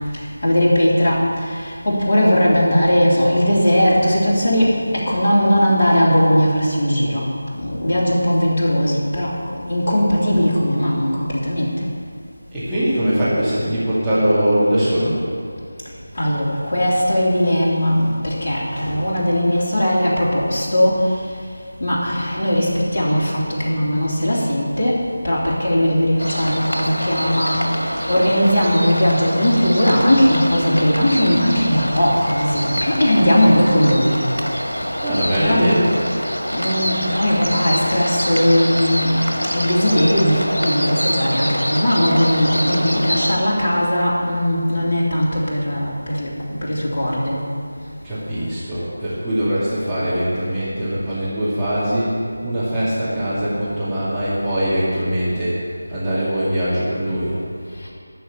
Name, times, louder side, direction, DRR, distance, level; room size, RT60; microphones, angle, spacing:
voice 1, 0.1-7.3 7.6-11.8 16.1-21.3 21.8-34.2 34.5-34.7 35.3-35.8 36.5-46.3 46.6-47.4 57.8-57.9, equal, 35° left, -6 dB, 3.3 m, -18 dB
voice 2, 12.5-15.2 35.0-35.9 48.0-55.6 55.9-57.4, equal, 5° right, -15 dB, 2.4 m, -21 dB
sound 1, 26.2-43.4, equal, 80° left, 1.7 m, -25 dB
12.5 x 6.2 x 8.6 m, 2.3 s
figure-of-eight pair, 165°, 0 cm